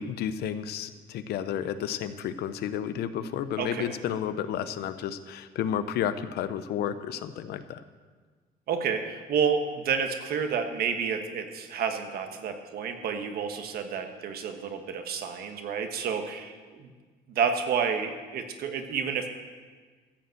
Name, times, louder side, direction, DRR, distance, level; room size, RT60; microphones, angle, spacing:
voice 1, 0.0-7.8, left 9 dB, 70° left, 12 dB, 0.7 m, -32 dB
voice 2, 3.6-3.9 8.7-16.9 17.3-19.3, right 6 dB, 65° right, 6 dB, 1.4 m, -30 dB
14.5 x 5.6 x 7.7 m, 1.4 s
cardioid pair, 110°, 17 cm